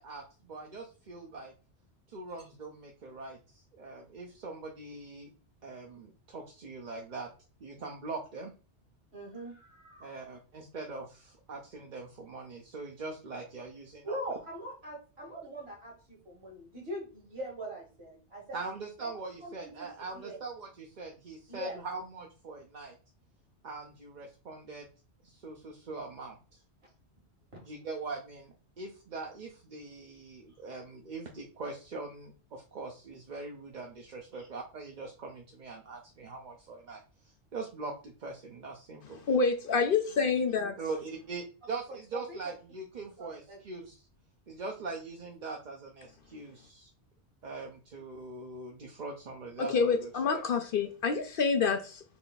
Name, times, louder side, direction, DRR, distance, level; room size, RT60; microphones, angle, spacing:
voice 1, 0.0-1.5 2.1-5.3 5.6-7.3 7.6-8.5 10.0-14.2 18.5-23.0 23.6-24.9 25.2-26.6 27.6-39.2 40.8-44.0 44.5-46.9 47.4-50.4, right 3 dB, 45° right, 0.8 m, -42 dB
voice 2, 9.1-10.2 14.0-18.6 19.0-20.4 21.5-21.8 27.5-27.6 34.3-34.5 42.1-42.4 43.2-43.6, right 1 dB, 65° right, 2.1 m, -42 dB
voice 3, 39.3-40.7 49.7-52.0, left 5 dB, 60° left, 0.7 m, -27 dB
4.1 x 3.3 x 3.9 m
omnidirectional pair, 1.2 m